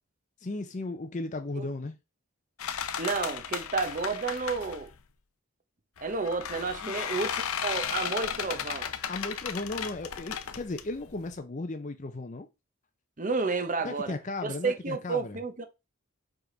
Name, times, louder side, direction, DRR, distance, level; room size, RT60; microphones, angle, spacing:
voice 1, 0.4-2.0 6.8-6.9 9.1-12.5 13.8-15.4, left 2 dB, 35° left, 0.5 m, -35 dB
sound 1, 2.6-4.9 6.0-11.4, left 8 dB, 85° left, 0.7 m, -35 dB
voice 2, 3.0-4.9 6.0-8.9 13.2-14.1 14.4-15.7, right 4 dB, 35° right, 0.8 m, -31 dB
5.0 x 4.9 x 3.8 m
head